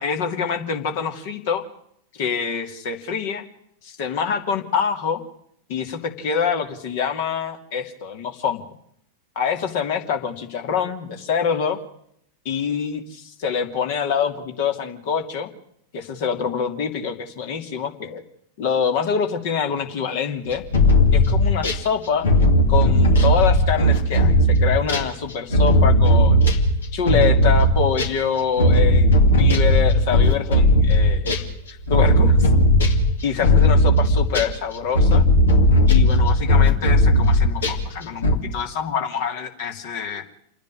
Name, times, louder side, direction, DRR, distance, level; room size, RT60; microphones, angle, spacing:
voice 1, 0.0-1.6 2.1-3.4 3.8-5.2 5.7-8.6 9.4-11.8 12.4-15.5 15.9-18.2 18.6-20.6 21.1-22.3 22.7-26.4 26.9-31.3 31.7-32.5 33.2-35.2 35.9-40.2, left 6 dB, 50° left, 5 dB, 2.7 m, -25 dB
sound 1, 20.5-21.8 22.2-28.2 28.6-37.9 38.2-38.4, left 1 dB, 65° left, 2.5 m, -16 dB
28.5 x 10.5 x 9.9 m, 0.71 s
figure-of-eight pair, 90°, 0 cm